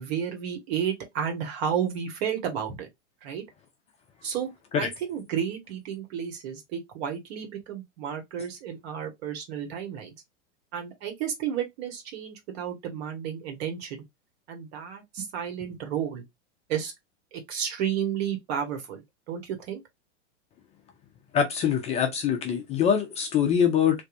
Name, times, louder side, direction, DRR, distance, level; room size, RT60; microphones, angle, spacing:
voice 1, 0.0-2.9 3.2-3.4 4.2-10.1 10.7-14.0 14.5-16.2 16.7-16.9 17.3-19.8, right 8 dB, 55° right, 1.5 m, -32 dB
voice 2, 21.3-24.0, left 8 dB, 20° left, 0.4 m, -24 dB
3.2 x 2.6 x 2.5 m
hypercardioid pair, 130°, 37 cm